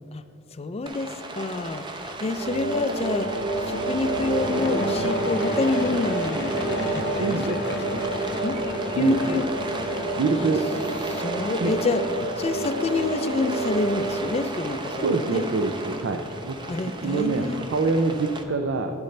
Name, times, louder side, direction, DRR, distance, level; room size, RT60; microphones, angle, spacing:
voice 1, 0.5-3.3 3.6-8.0 8.4-8.6 8.9-9.5 10.4-10.5 11.1-12.1 12.4-15.5 16.7-17.7, left 3 dB, 30° left, 11 dB, 0.4 m, -28 dB
Rain, 0.9-18.4, right 2 dB, 25° right, 0.7 m, -35 dB
sound 1, 2.4-14.6, right 2 dB, 50° right, 0.9 m, -29 dB
Aircraft / Engine, 3.7-11.6, left 3 dB, 60° left, 0.7 m, -39 dB
voice 2, 7.2-8.0 9.0-9.4 10.2-10.6 11.6-11.7 15.0-16.6 17.0-18.9, right 3 dB, 65° right, 5 dB, 0.5 m, -25 dB
10.5 x 10.5 x 3.2 m, 2.5 s
head